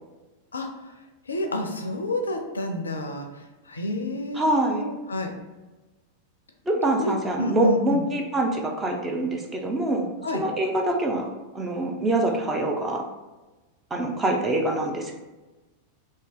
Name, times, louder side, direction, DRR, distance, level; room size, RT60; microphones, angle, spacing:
voice 1, 0.5-0.9 1.3-5.3 7.0-8.0 10.2-10.4, left 1 dB, 75° left, 4 dB, 0.4 m, -29 dB
voice 2, 4.4-4.8 6.7-10.1 10.3-11.3 11.5-13.0 13.9-15.1, right 1 dB, 15° right, 1 dB, 0.6 m, -25 dB
2.8 x 2.7 x 3.6 m, 1.2 s
figure-of-eight pair, 90°, 0 cm